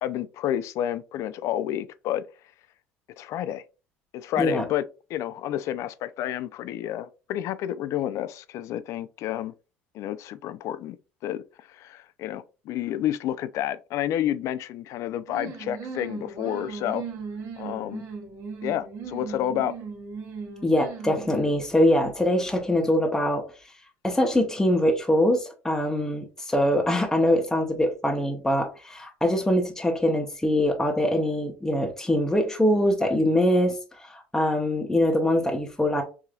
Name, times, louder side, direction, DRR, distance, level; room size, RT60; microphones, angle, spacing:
voice 1, 0.0-2.2 3.2-3.6 4.1-4.8 5.1-9.5 9.9-11.0 11.2-17.0 17.6-18.0 18.6-19.7, left 11 dB, 60° left, 0.4 m, -30 dB
sound 1, 15.3-21.7, right 5 dB, 50° right, 1.2 m, -38 dB
voice 2, 20.6-23.4 24.0-36.0, left 1 dB, 10° left, 0.9 m, -23 dB
4.8 x 2.7 x 2.4 m
supercardioid pair, 85°, 6 cm